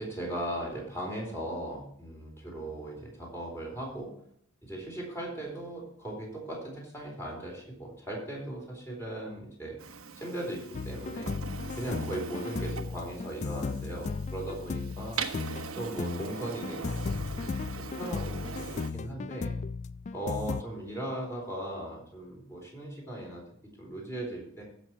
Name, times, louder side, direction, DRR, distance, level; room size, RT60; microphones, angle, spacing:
voice 1, 0.0-4.1 4.6-9.8 10.2-11.4 11.8-15.2 15.8-17.5 17.7-19.5 20.1-23.4 23.8-24.6, right 1 dB, 15° left, -2 dB, 4.0 m, -38 dB
Printer, 9.8-18.9, right 5 dB, 85° right, 1.0 m, -41 dB
sound 1, 10.7-20.6, left 4 dB, 35° left, 0.3 m, -36 dB
14.5 x 6.2 x 4.6 m, 0.69 s
head